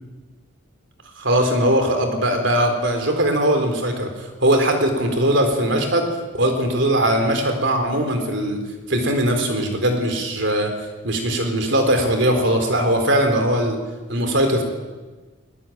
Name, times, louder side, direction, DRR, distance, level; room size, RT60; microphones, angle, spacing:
voice 1, 1.2-6.1 6.3-8.6 8.9-10.7 11.0-13.8 14.1-14.6, right 1 dB, 55° right, 5 dB, 4.0 m, -20 dB
20.5 x 19.5 x 9.2 m, 1.3 s
head